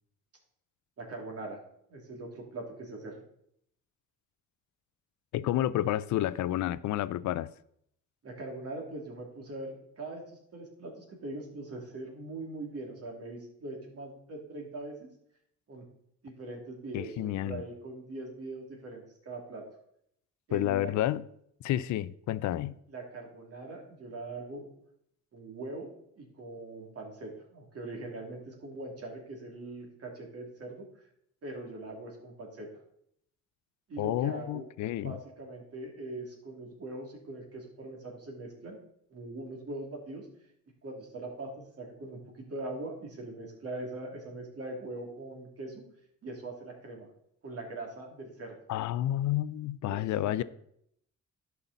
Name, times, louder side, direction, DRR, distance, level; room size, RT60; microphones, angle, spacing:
voice 1, 1.0-1.6 1.9-3.2 8.2-15.1 15.7-15.8 16.2-19.6 20.5-20.9 22.9-24.7 25.3-30.9 31.4-32.7 33.9-34.7 35.0-38.8 39.1-40.3 40.8-45.8 46.2-47.1 47.4-48.6 49.9-50.4, right 2 dB, 50° right, 2.6 m, -42 dB
voice 2, 5.3-7.5 16.9-17.6 20.5-21.2 21.6-22.8 34.0-35.2 48.7-50.4, left 13 dB, 70° left, 0.5 m, -30 dB
11.0 x 5.8 x 4.0 m
cardioid pair, 90°, 30 cm